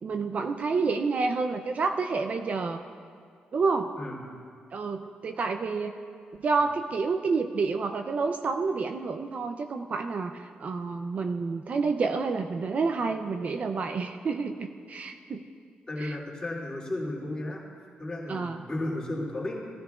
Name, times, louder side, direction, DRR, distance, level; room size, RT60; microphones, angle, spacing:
voice 1, 0.0-2.8 3.5-3.9 4.7-5.9 6.3-15.4 16.0-16.2 18.3-18.6, right 4 dB, 45° right, 6 dB, 0.4 m, -29 dB
voice 2, 15.9-17.6 18.0-19.6, left 1 dB, 20° left, -5 dB, 2.6 m, -33 dB
17.0 x 13.5 x 2.4 m, 2.2 s
wide cardioid pair, 125°, 3 cm